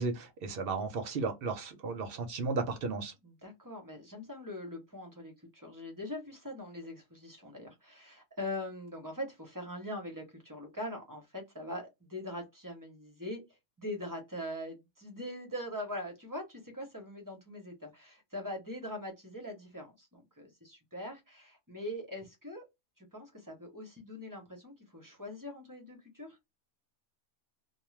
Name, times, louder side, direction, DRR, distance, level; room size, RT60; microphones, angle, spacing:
voice 1, 0.0-3.1, right 4 dB, 55° right, 0.7 m, -34 dB
voice 2, 3.2-13.4 13.8-22.6 23.0-26.4, left 1 dB, 20° right, 0.6 m, -42 dB
2.4 x 2.2 x 3.1 m
omnidirectional pair, 1.4 m